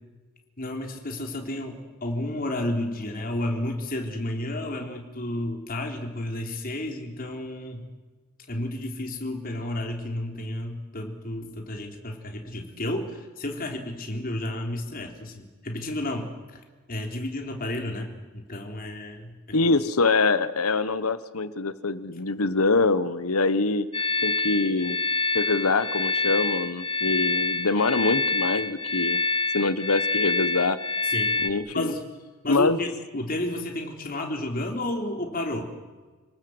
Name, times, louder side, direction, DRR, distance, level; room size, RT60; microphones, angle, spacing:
voice 1, 0.6-7.9 8.5-16.6 16.9-19.3 31.1-31.4 31.7-32.1 32.4-35.7, left 1 dB, 40° left, 3 dB, 3.6 m, -31 dB
voice 2, 19.5-23.9 24.2-25.0 25.3-29.2 29.5-30.8 31.4-31.9 32.5-32.8, left 3 dB, 80° left, 15 dB, 1.3 m, -24 dB
sound 1, 23.9-31.5, left 3 dB, 25° left, 1.0 m, -26 dB
28.5 x 19.0 x 8.0 m, 1.4 s
head